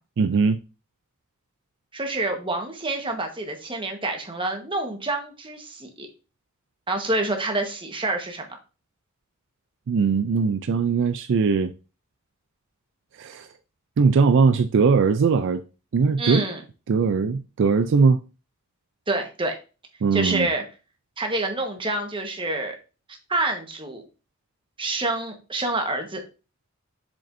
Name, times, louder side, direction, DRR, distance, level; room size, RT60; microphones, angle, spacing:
voice 1, 0.2-0.6 9.9-11.7 13.2-13.5 14.0-15.6 15.9-16.5 16.9-18.2 20.0-20.5, right 5 dB, 60° right, 0.4 m, -20 dB
voice 2, 1.9-6.1 6.9-8.4 16.2-16.6 19.1-19.6 20.1-20.6 21.2-22.8 23.3-24.0 24.8-26.2, right 2 dB, 25° right, 1.3 m, -27 dB
7.3 x 5.1 x 2.7 m
head